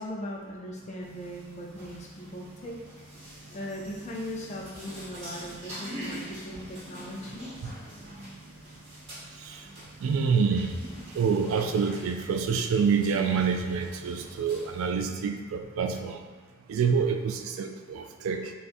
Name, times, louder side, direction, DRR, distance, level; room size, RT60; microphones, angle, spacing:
voice 1, 0.0-3.1 3.5-7.7, equal, 35° left, -1 dB, 0.4 m, -39 dB
sound 1, 1.0-14.9, equal, 30° right, 1.4 m, -45 dB
voice 2, 10.0-10.7 11.1-16.2 16.7-18.5, right 5 dB, 80° right, 5 dB, 0.3 m, -27 dB
4.1 x 2.4 x 2.5 m, 1.5 s
head